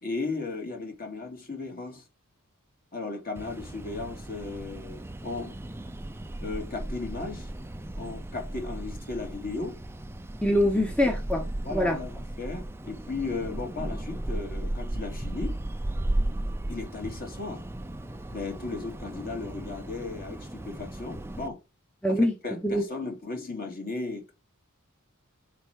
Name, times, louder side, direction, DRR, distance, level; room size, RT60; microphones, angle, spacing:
voice 1, 0.0-2.0 2.9-5.5 6.4-7.5 8.0-9.8 11.6-15.5 16.7-17.6 18.3-21.6 22.1-24.3, left 3 dB, 40° left, 2.2 m, -36 dB
sound 1, 3.4-21.5, right 1 dB, 10° right, 0.5 m, -35 dB
voice 2, 10.4-11.4 11.7-12.0 22.0-22.8, left 1 dB, 5° left, 0.9 m, -24 dB
5.8 x 4.5 x 6.4 m
head